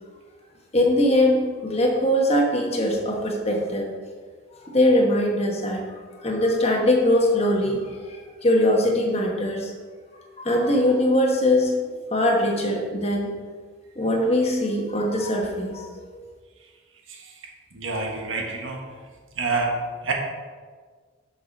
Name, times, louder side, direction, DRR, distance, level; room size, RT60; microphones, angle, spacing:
voice 1, 0.7-3.9 4.6-5.8 6.2-9.7 10.4-11.7 12.1-13.3 14.0-15.9 16.1-16.2, left 1 dB, 30° left, 0 dB, 1.2 m, -21 dB
voice 2, 17.1-17.4 17.7-19.0 19.3-20.1, right 3 dB, 75° right, 1 dB, 1.4 m, -28 dB
7.6 x 5.8 x 5.3 m, 1.6 s
head